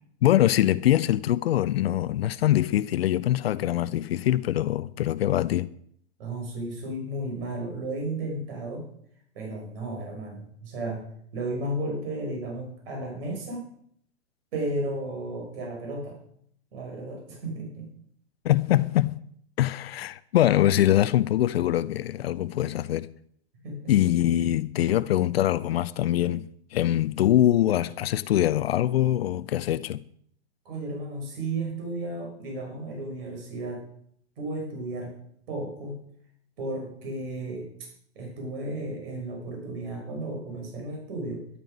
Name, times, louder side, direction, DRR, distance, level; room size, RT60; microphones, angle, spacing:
voice 1, 0.2-5.7 18.4-19.2 19.6-23.1 23.9-30.0, left 13 dB, 65° left, 0.6 m, -23 dB
voice 2, 6.2-8.9 9.3-11.1 11.3-13.6 14.5-16.2 16.7-17.9 23.6-24.0 30.7-33.8 34.4-35.2 35.5-36.0 36.6-37.7 38.2-41.4, right 2 dB, 60° right, 5.5 m, -33 dB
12.5 x 11.5 x 5.3 m
hypercardioid pair, 105°, 33 cm